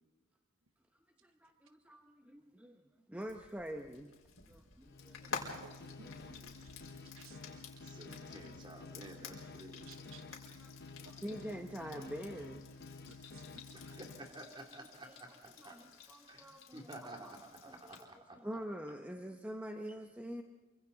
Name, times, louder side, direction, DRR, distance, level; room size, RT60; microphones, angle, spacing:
voice 1, 1.2-2.8 3.1-4.1 4.5-5.4 5.8-7.0 7.3-7.4 10.4-12.7 13.7-14.0 14.5-14.7 15.0-15.2 15.6-17.3 17.6-17.9 18.4-20.4, equal, 5° right, 3 dB, 1.0 m, -46 dB
Frying (food), 3.2-18.0, left 5 dB, 75° left, 4.7 m, -51 dB
sound 1, 4.8-14.4, left 3 dB, 50° left, 0.9 m, -51 dB
voice 2, 5.6-7.7 8.0-8.2 9.7-10.4 11.0-11.4 11.9-12.0 13.1-14.0, right 4 dB, 75° right, 10 dB, 0.9 m, -59 dB
voice 3, 7.8-10.0 13.7-15.8 16.3-18.4, right 1 dB, 25° right, 2 dB, 3.1 m, -52 dB
28.0 x 25.0 x 4.1 m, 1.2 s
head